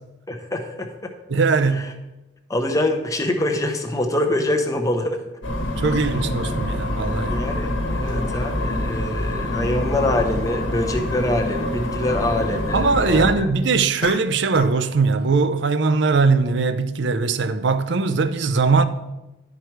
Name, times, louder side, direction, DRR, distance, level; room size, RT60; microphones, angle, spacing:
voice 1, 0.3-1.1 1.7-1.9 2.5-5.2 5.8-6.0 7.3-13.5, left 1 dB, 15° left, 0.8 m, -25 dB
voice 2, 1.3-1.8 5.8-7.4 12.7-18.9, right 4 dB, 55° right, 0.5 m, -20 dB
sound 1, 5.4-13.4, left 1 dB, 65° left, 1.3 m, -26 dB
sound 2, 14.0-14.9 15.2-15.5, left 6 dB, 45° left, 0.4 m, -36 dB
11.5 x 4.8 x 4.6 m
head